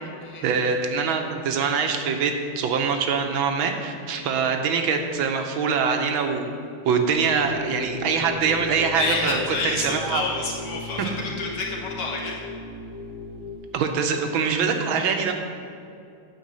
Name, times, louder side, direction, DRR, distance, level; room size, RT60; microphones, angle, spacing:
voice 1, 0.4-6.5 6.8-10.2 11.0-11.1 13.7-15.3, right 5 dB, 70° right, 5 dB, 1.5 m, -24 dB
sound 1, 7.3-13.6, left 4 dB, 45° left, 0.6 m, -36 dB
voice 2, 9.0-12.4, left 3 dB, 85° left, -2 dB, 2.4 m, -29 dB
9.3 x 4.7 x 7.5 m, 2.5 s
omnidirectional pair, 2.3 m